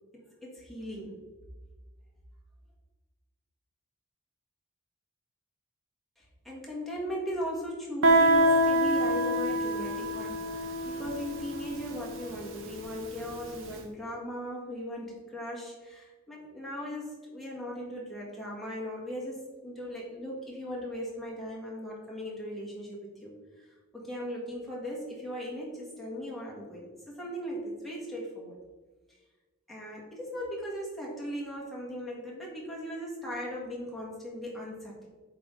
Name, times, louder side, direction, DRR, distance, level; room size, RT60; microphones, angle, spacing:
voice 1, 0.1-1.1 6.2-23.3 23.6-28.6 29.7-35.1, equal, ahead, -5 dB, 1.5 m, -38 dB
Guitar, 8.0-13.5, right 1 dB, 65° right, 0.8 m, -26 dB
8.2 x 3.5 x 3.7 m, 1.3 s
head